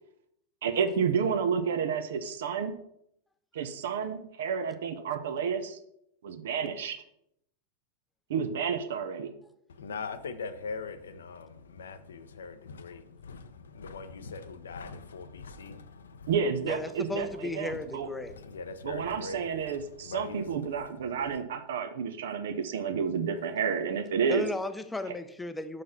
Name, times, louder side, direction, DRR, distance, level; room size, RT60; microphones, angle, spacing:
voice 1, 0.6-2.7 3.5-5.8 6.2-7.0 8.3-9.3 16.3-18.1 18.8-24.5, right 6 dB, 60° right, 0.8 m, -30 dB
voice 2, 9.7-16.3 17.7-17.8 18.2-20.6 21.1-21.4, left 4 dB, 65° left, 0.6 m, -41 dB
voice 3, 16.6-18.4 24.3-25.8, left 2 dB, 5° left, 0.6 m, -35 dB
5.9 x 5.0 x 5.5 m
figure-of-eight pair, 90°, 0 cm